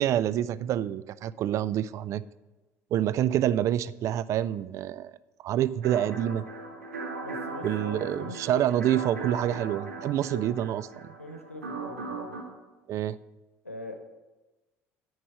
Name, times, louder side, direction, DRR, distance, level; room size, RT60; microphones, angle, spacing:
voice 1, 0.0-2.2 2.9-5.1 5.4-6.4 7.6-10.8 12.9-13.2, right 11 dB, 45° right, 17 dB, 0.3 m, -27 dB
sound 1, 5.8-12.4, right 3 dB, 80° right, 1.1 m, -38 dB
voice 2, 7.2-8.9 10.0-10.5 11.2-12.4 13.6-14.0, left 1 dB, 85° left, 5 dB, 0.9 m, -42 dB
10.0 x 4.7 x 7.5 m, 1.1 s
figure-of-eight pair, 60°, 7 cm